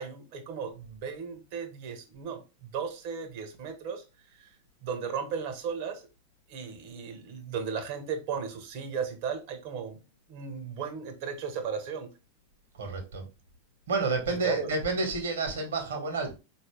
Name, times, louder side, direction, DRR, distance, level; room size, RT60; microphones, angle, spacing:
voice 1, 0.0-4.0 4.3-4.6 4.8-6.1 6.5-10.0 10.3-12.1 14.3-14.7, right 6 dB, 45° right, 0.9 m, -36 dB
voice 2, 12.8-13.2 13.9-16.3, right 3 dB, 65° right, 1.3 m, -29 dB
4.2 x 2.7 x 3.2 m
figure-of-eight pair, 90°, 0 cm